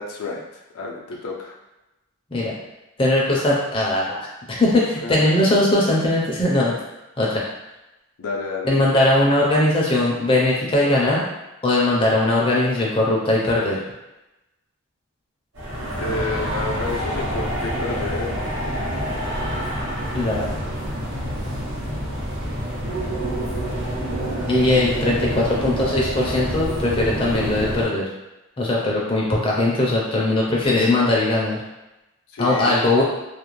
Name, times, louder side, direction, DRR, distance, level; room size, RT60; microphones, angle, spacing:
voice 1, 0.0-1.6 5.0-5.3 8.2-9.0 16.0-18.4 32.3-32.8, left 3 dB, 85° left, 0 dB, 0.4 m, -30 dB
voice 2, 3.0-6.7 7.2-7.4 8.6-11.2 11.6-13.8 20.1-20.5 24.5-28.0 28.6-31.6 32.4-33.0, left 1 dB, 25° left, -4 dB, 0.4 m, -20 dB
sound 1, 15.5-27.8, equal, 90° right, 1.0 m, -27 dB
2.4 x 2.1 x 3.0 m, 0.99 s
head